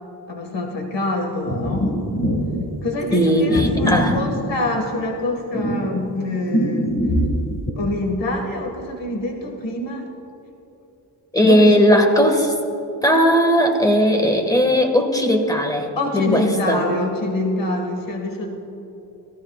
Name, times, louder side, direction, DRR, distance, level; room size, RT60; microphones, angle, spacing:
voice 1, 0.3-2.0 2.8-7.0 7.8-10.1 11.4-11.7 16.0-18.5, left 1 dB, 85° left, 2 dB, 1.9 m, -25 dB
sound 1, 1.4-2.6 3.5-5.0 5.5-7.7, equal, 35° left, 2.0 m, -23 dB
voice 2, 3.1-4.2 11.3-12.6 13.0-16.8, equal, 10° left, 3 dB, 1.6 m, -17 dB
27.0 x 16.5 x 2.4 m, 3.0 s
wide cardioid pair, 125°, 43 cm